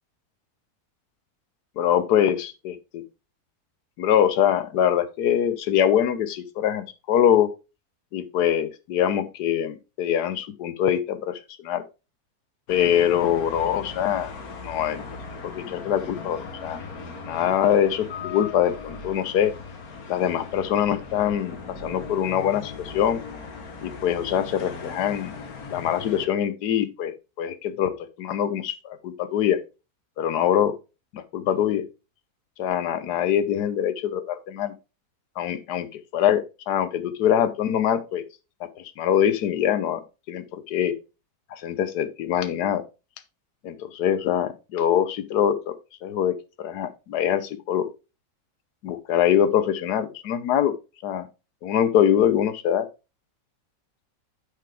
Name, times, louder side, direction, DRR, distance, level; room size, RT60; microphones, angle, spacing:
voice 1, 1.8-3.0 4.0-7.5 8.1-11.8 12.7-14.3 14.6-15.0 15.4-16.8 17.3-19.5 20.1-23.2 23.8-25.4 25.7-27.9 28.2-29.6 30.2-30.7 31.1-31.8 32.6-34.7 35.4-38.2 38.8-40.0 40.3-40.9 41.5-42.8 43.6-45.7 46.0-47.9 48.8-50.7 51.0-51.3 51.6-52.9, left 10 dB, 85° left, 12 dB, 1.4 m, -23 dB
sound 1, 12.7-26.3, left 4 dB, 70° left, 1.7 m, -38 dB
9.3 x 5.1 x 3.3 m, 0.28 s
omnidirectional pair, 1.7 m